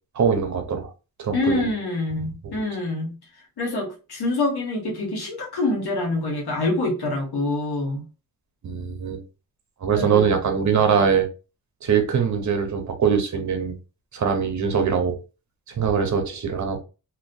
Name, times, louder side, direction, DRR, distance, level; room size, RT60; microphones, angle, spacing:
voice 1, 0.1-0.9 1.2-1.7 8.6-9.2 9.8-11.3 11.8-13.7 14.1-15.2 15.8-16.8, right 6 dB, 50° right, 0.7 m, -22 dB
voice 2, 1.3-3.2 3.6-8.0 9.9-10.3, left 2 dB, 80° left, 1.0 m, -26 dB
2.2 x 2.2 x 2.5 m
cardioid pair, 60°, 38 cm